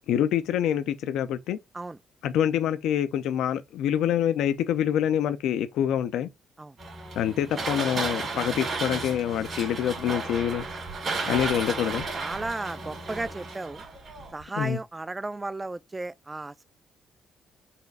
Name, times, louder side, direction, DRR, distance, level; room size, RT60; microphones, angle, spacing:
voice 1, 0.1-1.6 2.2-6.3 7.2-10.7 11.3-12.0 14.6-14.8, left 10 dB, 85° left, 0.3 m, -26 dB
sound 1, 6.8-14.4, right 3 dB, 50° right, 1.8 m, -33 dB
voice 2, 12.1-13.8 14.3-16.6, right 2 dB, 20° right, 0.3 m, -34 dB
4.1 x 2.4 x 3.9 m
cardioid pair, 90°, 0 cm